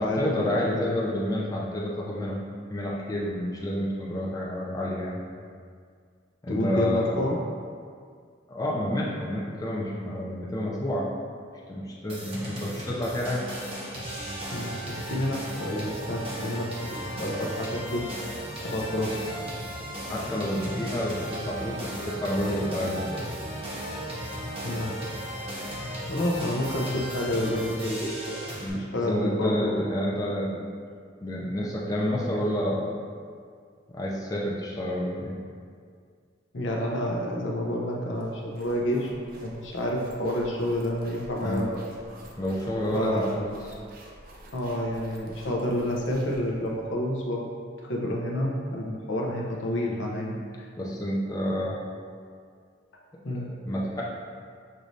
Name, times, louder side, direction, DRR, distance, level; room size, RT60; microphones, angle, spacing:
voice 1, 0.0-2.4 2.7-5.2 6.4-7.2 8.5-11.1 11.7-13.4 19.3-19.4 20.1-23.3 28.6-30.6 31.2-32.9 33.9-35.4 41.4-41.7 42.4-43.5 49.9-50.1 50.8-51.8 53.3-54.0, left 1 dB, 20° left, -5 dB, 0.5 m, -29 dB
voice 2, 6.5-7.4 14.5-18.1 18.6-19.2 24.6-24.9 26.1-28.4 28.7-29.8 36.5-39.1 39.4-41.8 42.9-43.2 44.5-47.5 47.9-50.6 53.2-53.5, left 1 dB, 65° left, -1 dB, 0.6 m, -29 dB
sound 1, 12.1-28.7, equal, 30° right, 0.8 m, -36 dB
sound 2, 38.2-46.9, right 1 dB, 45° right, 0.5 m, -49 dB
6.4 x 3.1 x 2.6 m, 2.1 s
head